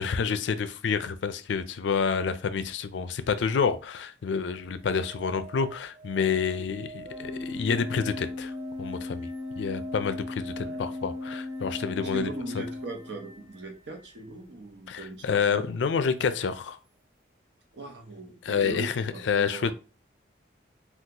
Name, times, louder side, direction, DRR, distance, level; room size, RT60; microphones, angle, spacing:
voice 1, 0.0-8.5 8.8-9.3 9.6-12.3 14.9-16.8 18.4-19.7, left 6 dB, 80° left, 12 dB, 0.4 m, -28 dB
sound 1, 4.4-14.2 16.5-16.6, right 3 dB, 40° right, 1.0 m, -47 dB
Organ, 7.0-13.6, left 2 dB, 10° right, 0.7 m, -37 dB
voice 2, 12.0-16.0 17.7-19.7, right 2 dB, 70° right, 3 dB, 0.8 m, -40 dB
2.8 x 2.3 x 3.7 m, 0.33 s
head